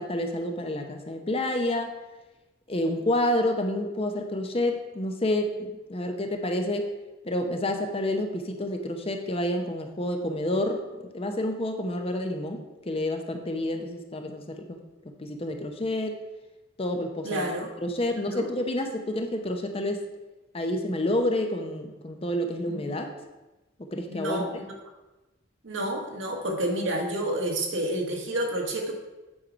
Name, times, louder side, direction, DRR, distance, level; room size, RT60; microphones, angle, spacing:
voice 1, 0.0-1.9 2.7-6.9 7.2-10.8 11.1-14.8 15.0-16.1 16.8-17.5 17.8-20.0 20.5-23.1 23.9-24.4, left 1 dB, 30° left, 5 dB, 0.7 m, -29 dB
voice 2, 17.2-17.7 18.2-18.5 22.7-22.8 24.1-24.5 25.6-28.9, right 1 dB, 75° right, 1 dB, 1.5 m, -29 dB
8.6 x 4.7 x 5.1 m, 1.1 s
head